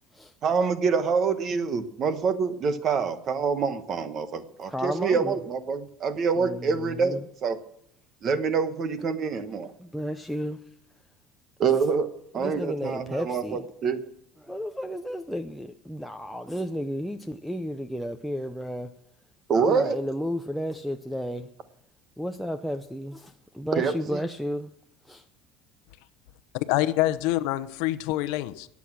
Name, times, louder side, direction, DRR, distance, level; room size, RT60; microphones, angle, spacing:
voice 1, 0.4-7.6 8.2-9.7 11.6-12.1 12.3-14.0 19.5-20.0 23.8-24.2, right 5 dB, 30° right, 1.1 m, -26 dB
voice 2, 4.7-5.4 6.3-7.3 9.8-10.6 12.4-13.6 14.4-18.9 19.5-21.5 22.2-24.7 25.0-25.2, equal, ahead, 0.5 m, -33 dB
voice 3, 26.5-28.7, left 16 dB, 70° left, 0.9 m, -26 dB
20.0 x 8.5 x 6.1 m
cardioid pair, 175°, 0 cm